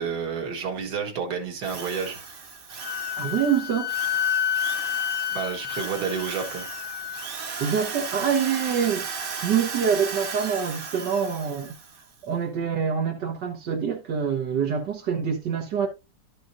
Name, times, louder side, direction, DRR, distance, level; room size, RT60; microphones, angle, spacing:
voice 1, 0.0-2.2 5.3-6.6, right 6 dB, 75° right, 2.2 m, -30 dB
Drill, 1.6-12.0, right 5 dB, 40° right, 0.8 m, -36 dB
Wind instrument woodwind instrument, 2.8-7.3, left 9 dB, 75° left, 2.1 m, -29 dB
voice 2, 3.2-4.0 7.6-9.1 9.4-11.7 12.2-15.9, right 7 dB, 90° right, 1.9 m, -25 dB
12.0 x 6.1 x 2.6 m
omnidirectional pair, 1.8 m